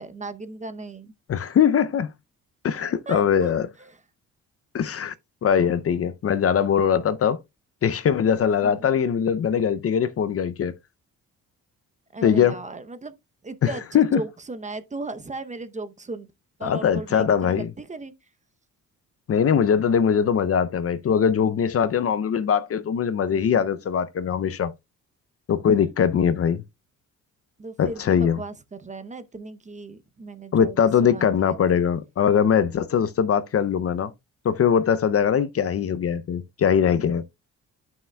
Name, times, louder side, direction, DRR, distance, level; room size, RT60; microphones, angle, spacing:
voice 1, 0.0-1.1 3.1-3.5 3.8-4.0 8.6-8.9 12.1-13.2 13.4-16.3 16.6-18.1 27.6-30.8 31.0-31.6, right 3 dB, 20° right, 0.7 m, -36 dB
voice 2, 1.3-2.1 2.6-3.7 4.7-5.1 5.4-7.4 7.8-10.7 12.2-12.6 13.6-14.2 16.6-17.7 19.3-24.7 25.5-26.6 27.8-28.4 30.5-34.1 34.4-37.2, left 7 dB, 45° left, 0.6 m, -21 dB
11.0 x 5.7 x 2.2 m
cardioid pair, 95°, 33 cm